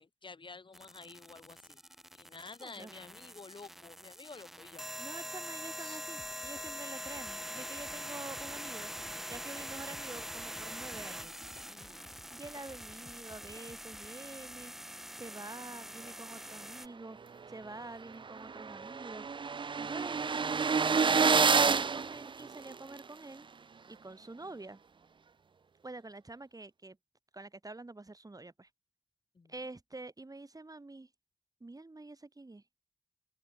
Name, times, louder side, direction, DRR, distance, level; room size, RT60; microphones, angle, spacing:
voice 1, 0.0-1.8 2.1-4.9 5.8-6.0 11.7-12.1 17.7-17.8 29.3-29.5, left 4 dB, 60° left, 1.6 m, -51 dB
sound 1, 0.7-16.9, equal, 5° right, 1.7 m, -44 dB
voice 2, 2.6-2.9 4.9-8.9 9.3-11.3 12.3-17.2 17.5-19.3 19.8-23.5 23.9-24.8 25.8-27.0 27.3-28.7 29.5-31.1 31.6-32.6, right 2 dB, 40° right, 3.5 m, -47 dB
sound 2, 6.1-14.1, left 2 dB, 40° left, 2.6 m, -58 dB
sound 3, 17.4-17.5 17.9-18.0 18.1-23.0, right 5 dB, 60° right, 0.5 m, -29 dB
open air
cardioid pair, 50°, 9 cm